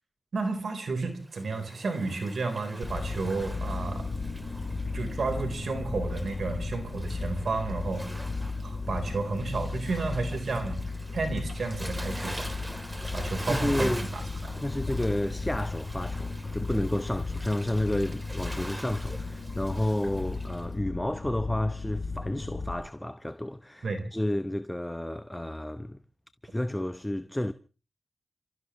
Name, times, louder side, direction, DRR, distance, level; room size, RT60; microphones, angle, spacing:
voice 1, 0.3-4.1 4.9-8.1 8.6-10.8 11.1-12.5 13.1-13.9 23.8-24.0, right 3 dB, 75° right, 4.1 m, -32 dB
Waves surf, 1.2-20.7, right 1 dB, 20° right, 3.5 m, -44 dB
sound 1, 2.8-22.7, left 3 dB, 55° left, 3.2 m, -35 dB
voice 2, 13.2-14.1 14.6-26.0 26.4-27.5, left 1 dB, 15° left, 0.9 m, -31 dB
29.5 x 15.0 x 3.2 m
cardioid pair, 40°, 0 cm